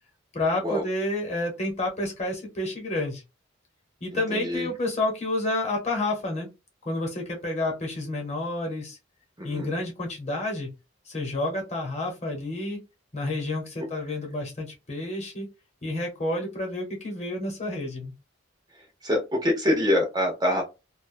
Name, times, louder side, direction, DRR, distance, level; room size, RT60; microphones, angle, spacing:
voice 1, 0.3-3.2 4.0-6.5 6.8-9.0 9.4-10.7 11.1-12.8 13.1-15.5 15.8-18.1, left 2 dB, 35° left, 0 dB, 1.0 m, -29 dB
voice 2, 4.3-4.7 9.4-9.7 19.0-20.6, left 1 dB, 20° right, 1 dB, 0.5 m, -25 dB
2.5 x 2.2 x 2.5 m, 0.25 s
head